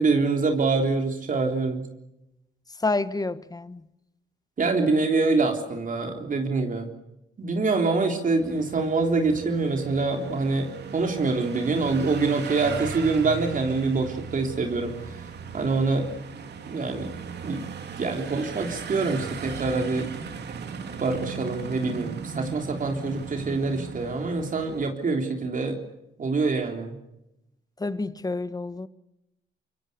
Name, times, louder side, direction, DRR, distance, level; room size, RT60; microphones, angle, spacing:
voice 1, 0.0-1.8 4.6-6.9 7.4-14.9 15.5-16.1 16.7-17.1 17.4-17.6 18.0-20.1 21.0-25.8 26.2-27.0, right 3 dB, 40° right, 3.7 m, -25 dB
voice 2, 2.8-3.8 27.8-28.9, left 3 dB, 20° left, 1.4 m, -28 dB
sound 1, 8.4-24.9, right 5 dB, 60° right, 3.2 m, -37 dB
25.5 x 23.0 x 6.9 m
cardioid pair, 90°, 20 cm